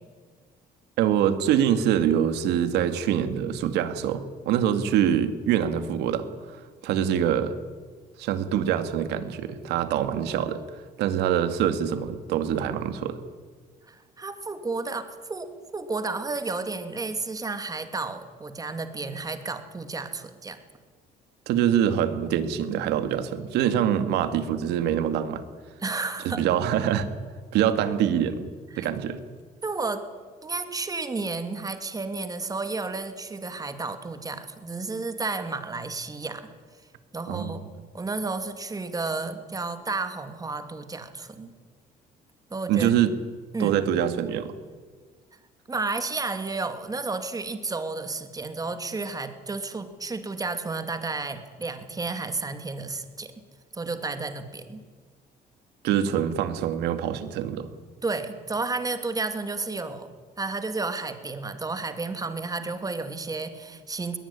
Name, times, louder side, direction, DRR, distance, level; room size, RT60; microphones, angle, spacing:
voice 1, 1.0-6.6 6.8-7.5 8.2-10.6 11.0-13.2 21.5-25.4 26.2-27.1 27.5-28.5 28.8-29.2 37.3-37.6 42.7-43.2 43.6-44.5 55.8-57.7, right 9 dB, 90° right, 10 dB, 2.2 m, -24 dB
voice 2, 13.9-20.6 25.8-26.5 28.7-28.9 29.6-30.0 30.4-36.5 37.1-37.7 37.9-41.5 42.5-42.9 43.5-43.7 45.7-53.3 53.7-54.8 58.0-60.1 60.4-64.2, right 3 dB, 20° right, 8 dB, 2.6 m, -32 dB
22.0 x 19.0 x 10.0 m, 1.5 s
cardioid pair, 110°, 17 cm